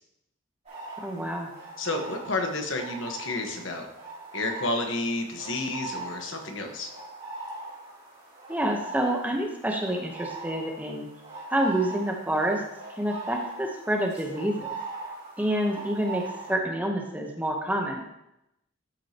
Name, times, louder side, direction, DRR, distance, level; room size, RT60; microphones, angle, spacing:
sound 1, 0.7-16.5, right 3 dB, 35° right, 3.0 m, -41 dB
voice 1, 1.0-1.5 8.5-11.1 11.5-12.6 12.9-14.8 15.4-18.0, right 1 dB, 10° right, 1 dB, 0.9 m, -28 dB
voice 2, 1.8-3.9 4.3-6.9, left 2 dB, 65° left, 3 dB, 1.3 m, -30 dB
12.5 x 6.4 x 2.9 m, 0.85 s
head